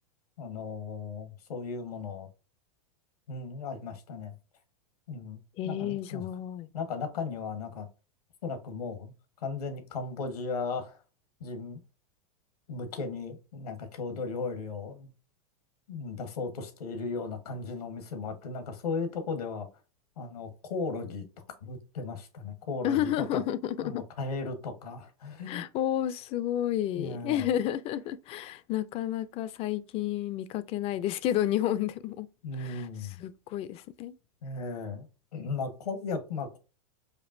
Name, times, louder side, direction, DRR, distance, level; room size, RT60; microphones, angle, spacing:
voice 1, 0.4-2.3 3.3-4.3 5.1-5.4 5.6-6.3 6.7-7.9 8.4-9.1 9.4-11.0 11.4-11.8 12.7-15.1 15.9-19.7 20.2-21.2 21.6-23.4 23.8-25.6 27.0-27.5 32.4-33.2 34.4-35.1 35.3-36.6, left 4 dB, 85° left, 1.3 m, -36 dB
voice 2, 5.6-6.7 22.8-24.0 25.5-32.3 32.6-32.9 33.2-34.1, left 11 dB, 30° left, 0.3 m, -31 dB
5.2 x 2.5 x 2.5 m
hypercardioid pair, 120°, 19 cm